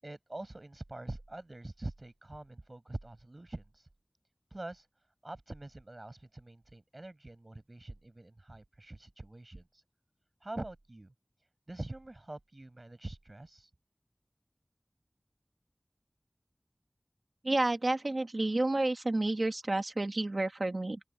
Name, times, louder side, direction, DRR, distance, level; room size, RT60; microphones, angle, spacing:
voice 1, 0.0-3.8 4.5-4.9 5.2-9.7 10.4-11.1 11.7-13.7, right 2 dB, 60° right, 7.5 m, -44 dB
voice 2, 17.4-21.0, right 2 dB, 75° right, 2.2 m, -30 dB
open air
wide cardioid pair, 40°, 0 cm